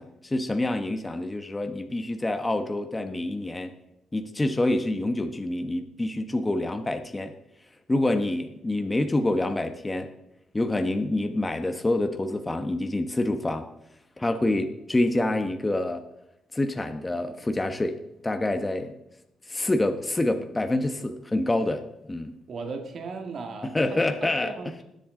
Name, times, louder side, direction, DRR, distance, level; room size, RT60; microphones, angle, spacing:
voice 1, 0.0-3.7 4.1-7.3 7.9-10.1 10.5-13.7 14.2-16.0 16.5-18.0 18.2-18.9 19.5-21.8 22.1-22.3 23.7-24.5, left 2 dB, 15° left, 6 dB, 1.0 m, -27 dB
voice 2, 22.5-24.8, right 4 dB, 55° right, 3 dB, 1.7 m, -37 dB
21.0 x 7.8 x 3.8 m, 0.86 s
cardioid pair, 90°, 0 cm